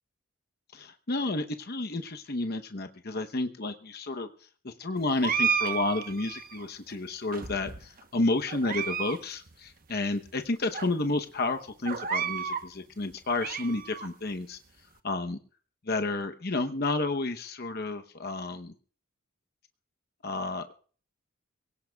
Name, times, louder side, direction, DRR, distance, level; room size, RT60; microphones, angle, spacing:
voice 1, 0.7-4.3 4.6-14.6 15.0-15.4 15.8-18.7 20.2-20.7, left 2 dB, 45° left, 7 dB, 0.9 m, -31 dB
sound 1, 5.2-6.6 7.3-8.0 8.5-9.2 9.5-9.6 10.3-10.4 10.7-10.9 11.8-12.7 13.1-14.1, right 6 dB, 40° right, 1.0 m, -31 dB
24.5 x 17.0 x 2.3 m, 0.42 s
head